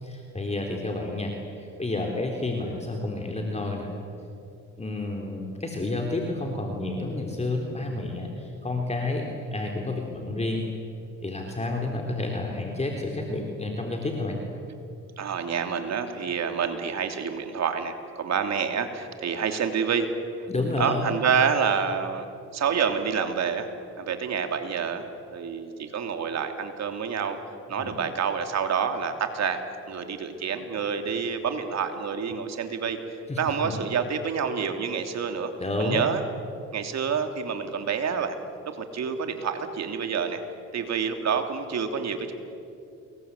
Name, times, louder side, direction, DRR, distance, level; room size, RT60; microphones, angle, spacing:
voice 1, 0.0-3.9 4.8-10.6 11.2-14.4 20.5-21.0 27.8-28.0 33.3-33.7 35.6-36.0, left 2 dB, 20° left, 1 dB, 3.7 m, -30 dB
voice 2, 15.2-20.1 20.8-22.3 22.5-23.7 24.0-25.0 25.3-27.4 27.7-29.6 29.9-35.5 35.8-36.2 36.7-38.3 38.7-40.4 40.7-42.3, right 6 dB, 60° right, 6 dB, 3.1 m, -28 dB
29.5 x 22.5 x 8.4 m, 2.7 s
cardioid pair, 90°, 30 cm